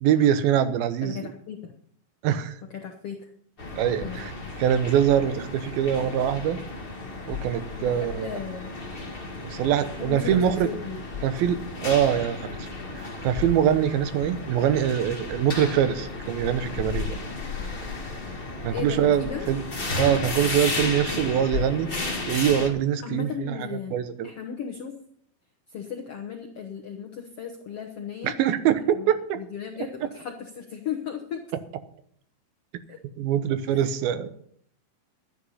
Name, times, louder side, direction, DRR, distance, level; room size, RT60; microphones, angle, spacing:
voice 1, 0.0-1.2 2.2-2.6 3.7-4.3 4.6-6.6 7.3-8.3 9.4-10.7 11.2-12.7 12.9-17.2 18.6-19.6 20.0-21.9 22.3-24.3 28.2-29.4 33.2-34.4, right 9 dB, 80° right, 11 dB, 2.7 m, -24 dB
voice 2, 1.0-1.7 2.7-3.3 4.0-4.2 7.8-8.7 9.9-11.0 18.7-19.5 23.0-24.0 24.2-25.0 25.7-28.3 28.9-31.4 32.9-33.0 33.7-33.9, left 8 dB, 75° left, 3 dB, 1.4 m, -36 dB
sound 1, 3.6-22.7, left 3 dB, 25° left, 1.1 m, -33 dB
13.0 x 9.8 x 5.5 m, 0.64 s
omnidirectional pair, 4.3 m